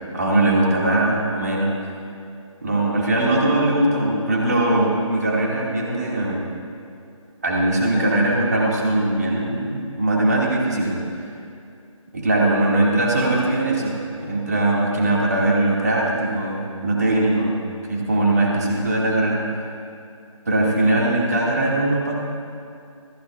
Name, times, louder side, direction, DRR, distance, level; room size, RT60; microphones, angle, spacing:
voice 1, 0.1-1.7 2.6-6.5 7.4-11.0 12.1-17.5 17.9-19.4 20.5-22.1, right 2 dB, 30° right, -3 dB, 2.1 m, -20 dB
26.0 x 14.5 x 2.5 m, 2.5 s
figure-of-eight pair, 175°, 17 cm